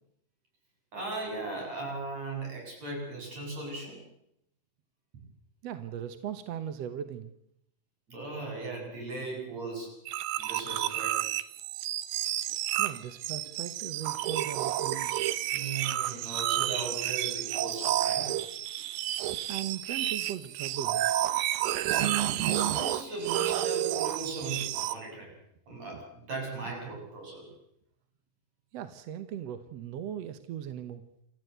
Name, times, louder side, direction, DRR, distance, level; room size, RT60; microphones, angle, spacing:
voice 1, 0.9-4.0 8.1-10.0 10.4-11.2 15.5-18.3 21.8-25.3 25.7-27.5, right 3 dB, 50° right, 0 dB, 8.6 m, -38 dB
voice 2, 5.6-7.3 12.8-15.3 19.5-21.1 25.9-26.0 28.7-31.0, right 9 dB, 65° right, 11 dB, 1.8 m, -38 dB
sound 1, 10.1-25.0, right 13 dB, 80° right, 2.6 m, -30 dB
28.0 x 14.0 x 8.0 m, 0.77 s
omnidirectional pair, 4.0 m